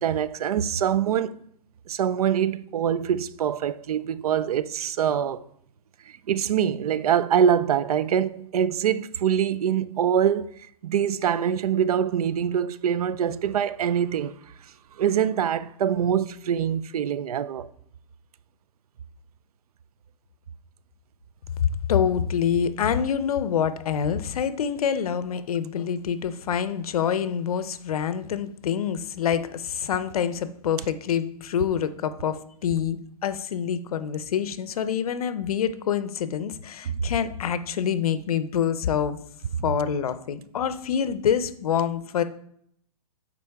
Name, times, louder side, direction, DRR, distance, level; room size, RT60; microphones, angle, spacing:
voice 1, 0.0-1.4 1.9-5.4 6.3-10.5 10.8-14.3 15.0-17.7 36.8-36.9, right 9 dB, 80° right, 0.5 m, -24 dB
voice 2, 21.6-39.2 39.6-42.2, left 8 dB, 75° left, 0.7 m, -26 dB
8.3 x 4.1 x 3.5 m
hypercardioid pair, 165°, 19 cm